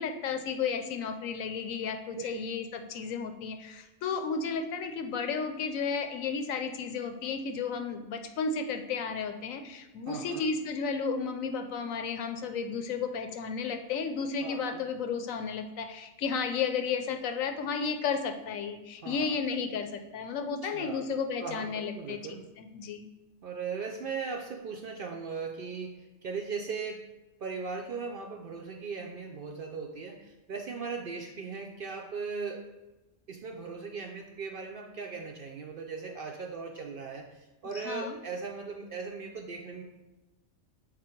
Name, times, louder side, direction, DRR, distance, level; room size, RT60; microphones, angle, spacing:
voice 1, 0.0-22.2 22.6-23.1 37.7-38.2, left 5 dB, 85° left, 7 dB, 1.0 m, -33 dB
voice 2, 10.1-10.5 14.4-14.8 19.0-19.3 20.6-21.0 21.4-22.5 23.4-27.0 27.4-32.6 33.3-39.8, right 5 dB, 65° right, 2 dB, 0.5 m, -38 dB
6.8 x 3.6 x 4.4 m, 1.0 s
omnidirectional pair, 1.4 m